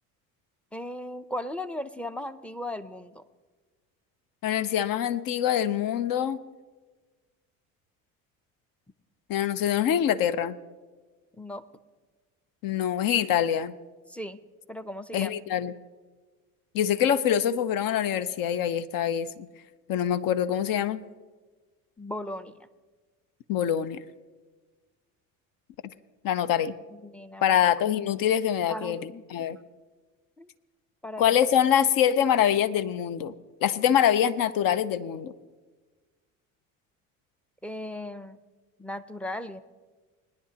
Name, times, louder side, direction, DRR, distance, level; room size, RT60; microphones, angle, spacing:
voice 1, 0.7-3.2 11.4-11.6 14.1-14.4 14.7-15.3 22.0-22.7 26.9-27.6 28.7-29.2 30.4-30.5 31.0-31.4 37.6-38.4 38.8-39.6, left 1 dB, 5° left, 11 dB, 0.6 m, -37 dB
voice 2, 4.4-6.4 9.3-10.6 12.6-13.7 15.1-15.7 16.7-19.5 19.9-21.0 23.5-24.0 26.2-26.7 27.4-29.6 31.2-33.3 33.6-35.3, left 9 dB, 55° left, 15 dB, 0.8 m, -24 dB
20.5 x 10.5 x 2.9 m, 1.3 s
hypercardioid pair, 70°, 42 cm